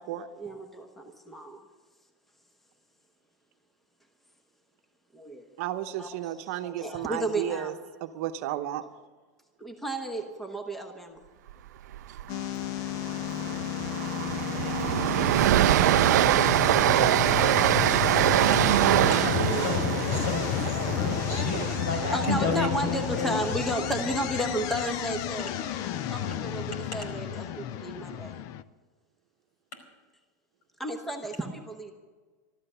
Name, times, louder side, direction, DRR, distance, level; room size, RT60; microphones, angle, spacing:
voice 1, 0.1-1.6 5.1-5.4 6.0-7.8 8.8-9.0 9.6-11.2 20.7-25.5 26.1-28.4 30.8-31.9, right 1 dB, ahead, 4 dB, 1.1 m, -34 dB
voice 2, 5.6-7.7 8.0-8.8, right 12 dB, 55° right, 8 dB, 0.9 m, -33 dB
Train, 11.9-12.2 12.5-12.6 13.0-23.2, right 14 dB, 85° right, 0.4 m, -24 dB
sound 1, 12.3-28.6, left 10 dB, 40° left, 0.5 m, -32 dB
voice 3, 19.1-19.8 20.1-23.3, left 3 dB, 70° left, 3 dB, 5.0 m, -31 dB
13.5 x 13.0 x 6.8 m, 1.4 s
supercardioid pair, 160°, 9 cm